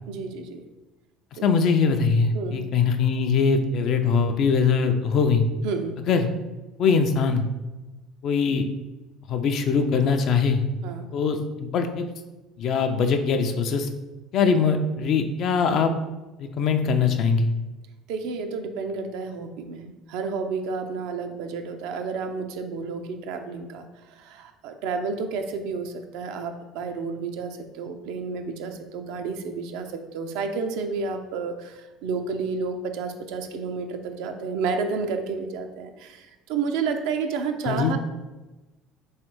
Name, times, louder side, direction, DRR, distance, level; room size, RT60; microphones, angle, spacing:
voice 1, 0.1-0.6 1.3-1.5 2.3-2.6 5.6-6.0 10.8-11.1 18.1-38.0, right 4 dB, 70° right, 6 dB, 0.4 m, -31 dB
voice 2, 1.3-5.4 6.1-6.3 6.8-7.4 8.2-8.6 9.3-10.6 11.1-12.1 12.6-13.9 14.3-15.9 16.4-17.5 37.7-37.9, left 5 dB, 55° left, 7 dB, 0.4 m, -22 dB
3.4 x 3.2 x 3.0 m, 1.1 s
hypercardioid pair, 65°, 0 cm